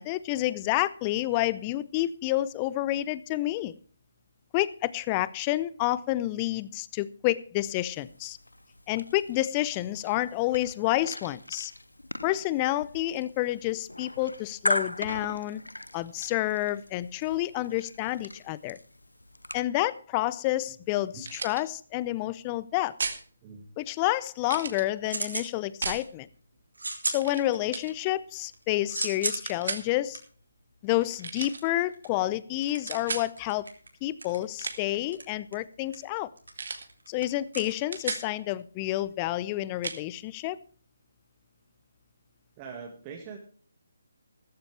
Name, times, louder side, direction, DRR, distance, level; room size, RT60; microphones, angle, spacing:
voice 1, 0.0-3.7 4.5-8.4 8.9-11.7 12.2-15.6 15.9-18.8 19.5-22.9 23.8-26.3 27.0-30.2 30.8-33.7 34.0-36.3 37.1-40.6, left 16 dB, 20° left, 0.6 m, -29 dB
sound 1, 7.6-19.6, left 1 dB, 85° left, 0.6 m, -38 dB
sound 2, 21.2-21.6 23.0-23.2 24.5-24.8 25.8-26.1 27.2-27.4 27.7-27.9 29.5-29.9 31.2-31.6 32.9-33.3 34.4-35.0 36.6-36.9 37.2-37.4 37.7-38.3 39.8-40.0, right 4 dB, 55° right, 1.8 m, -34 dB
sound 3, 24.4-25.5 25.9-26.3 26.7-27.9 28.3-38.4, right 2 dB, 75° right, 3.5 m, -37 dB
voice 2, 42.6-43.4, right 6 dB, 20° right, 1.9 m, -42 dB
14.5 x 14.0 x 3.3 m
figure-of-eight pair, 150°, 0 cm